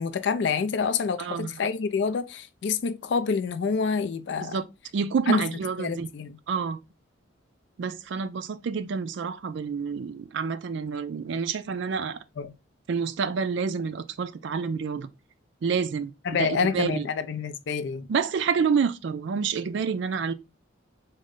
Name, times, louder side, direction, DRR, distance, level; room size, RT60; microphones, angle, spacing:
voice 1, 0.0-4.6 5.3-5.5 5.8-6.4 12.4-12.5 16.2-18.1, left 5 dB, 60° left, 0.3 m, -27 dB
voice 2, 1.2-1.6 4.4-4.6 4.9-6.1 6.5-6.8 7.8-12.2 12.9-15.1 15.6-17.1 18.1-20.3, right 6 dB, 60° right, 0.3 m, -28 dB
3.7 x 2.1 x 3.6 m
head